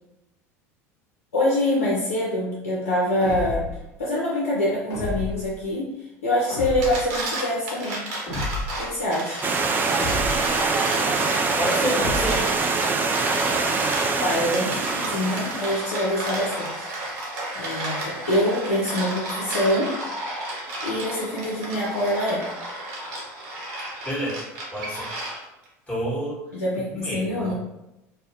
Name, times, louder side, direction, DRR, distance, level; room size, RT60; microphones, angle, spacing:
voice 1, 1.3-3.7 4.0-8.0 8.8-9.5 14.2-16.9 17.6-19.9 20.8-22.5 26.5-27.5, left 1 dB, 90° left, -5 dB, 0.5 m, -25 dB
sound 1, 3.2-3.9 4.9-5.5 6.5-7.2 8.3-8.9 9.9-10.6 11.9-12.6, left 2 dB, 40° left, 1.0 m, -31 dB
sound 2, 6.6-25.7, right 1 dB, 65° right, 0.9 m, -32 dB
Stream, 9.4-15.9, right 4 dB, 25° right, 0.3 m, -24 dB
voice 2, 11.6-12.4 24.0-24.4 24.7-25.1 25.9-26.4 26.9-27.5, equal, 15° left, -6 dB, 1.2 m, -28 dB
2.3 x 2.0 x 2.7 m, 0.92 s
hypercardioid pair, 80°, 8 cm